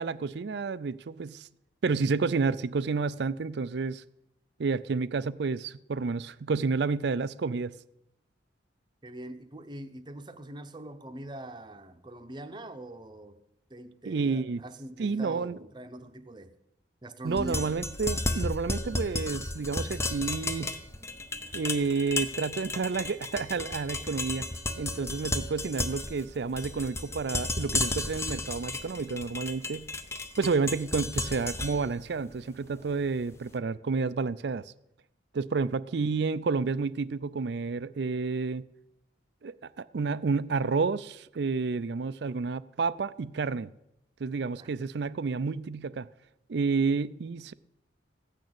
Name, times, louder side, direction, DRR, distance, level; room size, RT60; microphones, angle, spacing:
voice 1, 0.0-1.5 1.8-4.0 4.6-7.7 14.1-14.6 15.0-15.6 17.2-20.8 21.5-24.5 24.8-29.9 30.4-34.7 35.3-38.7 39.4-43.7 44.2-46.1 46.5-47.5, right 4 dB, 60° right, 0.4 m, -30 dB
voice 2, 9.0-13.4 13.7-16.5 17.0-17.6 44.5-44.7, right 1 dB, 25° right, 0.8 m, -43 dB
sound 1, 17.3-33.3, left 2 dB, 15° left, 0.7 m, -34 dB
15.5 x 6.4 x 8.6 m
head